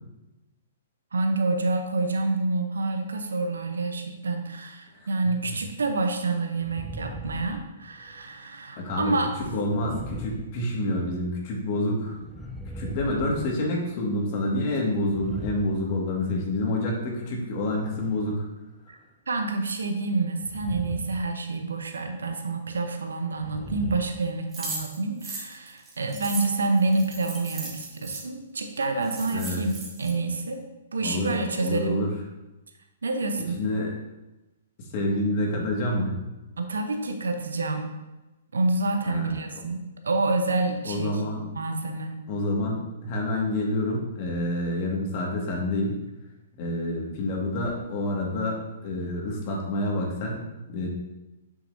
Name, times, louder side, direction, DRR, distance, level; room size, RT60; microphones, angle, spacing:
voice 1, 1.1-9.4 18.9-19.0 19.3-30.6 30.9-32.1 33.0-33.6 36.6-37.9 38.5-41.2 41.5-42.2, right 3 dB, 85° right, 5 dB, 0.8 m, -28 dB
voice 2, 5.2-5.5 8.8-9.1 9.5-12.2 12.8-18.5 29.3-29.6 31.0-31.3 31.6-32.1 33.6-33.9 34.8-36.1 39.1-39.3 40.8-41.5 42.3-46.0 46.6-50.9, left 1 dB, 45° left, -1 dB, 2.0 m, -28 dB
sound 1, 6.6-8.2 9.7-11.2 12.1-14.2 14.9-16.5 17.6-18.4 20.4-21.3 21.6-21.9 23.3-24.9, left 1 dB, ahead, 0.5 m, -40 dB
sound 2, 24.5-28.2 28.8-28.9 29.0-30.1, right 3 dB, 20° right, 1.7 m, -37 dB
7.6 x 6.5 x 2.7 m, 1.0 s
hypercardioid pair, 130°, 0 cm